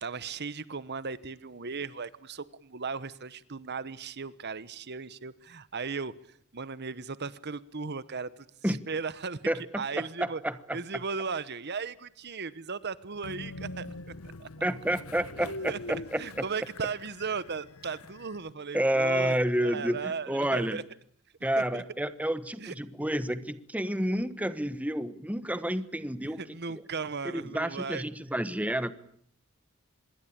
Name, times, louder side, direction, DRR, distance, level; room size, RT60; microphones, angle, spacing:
voice 1, 0.0-6.1 6.5-9.4 9.8-10.4 10.7-13.9 14.4-14.5 15.7-15.8 16.2-19.3 19.6-20.8 21.6-21.8 22.6-22.7 26.4-28.0, right 5 dB, 50° right, 17 dB, 1.1 m, -36 dB
voice 2, 9.5-10.8 14.6-16.4 18.7-20.8 21.4-26.4 26.7-26.8 27.3-28.9, right 1 dB, 5° right, 13 dB, 1.2 m, -30 dB
Train, 13.2-18.5, left 2 dB, 75° left, 1.2 m, -43 dB
26.5 x 22.5 x 8.7 m, 0.63 s
head